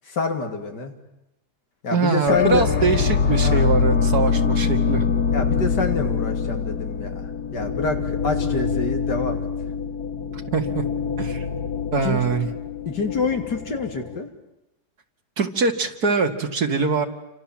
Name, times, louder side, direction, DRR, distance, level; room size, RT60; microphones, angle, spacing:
voice 1, 0.1-0.9 1.8-2.6 3.4-3.7 5.3-7.2 7.5-9.4 11.9-12.2 12.9-14.3, left 4 dB, 90° left, 5 dB, 3.3 m, -26 dB
voice 2, 1.9-5.0 10.3-10.8 11.2-11.5 11.9-12.5 15.4-17.1, right 5 dB, 65° right, 6 dB, 2.5 m, -23 dB
sound 1, 2.3-14.2, left 6 dB, 70° left, 1.9 m, -24 dB
30.0 x 26.0 x 7.4 m, 0.94 s
omnidirectional pair, 1.8 m